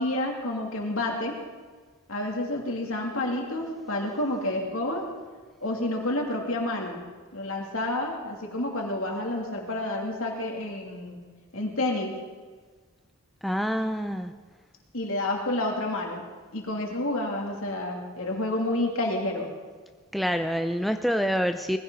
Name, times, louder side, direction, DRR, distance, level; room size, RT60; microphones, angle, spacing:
voice 1, 0.0-1.3 2.1-5.1 5.6-7.0 7.3-11.2 11.5-12.1 14.9-16.2 16.5-19.5, left 1 dB, 65° left, 0 dB, 2.8 m, -29 dB
voice 2, 13.4-14.3 20.1-21.8, equal, ahead, 7 dB, 0.4 m, -26 dB
20.5 x 15.5 x 4.0 m, 1.5 s
head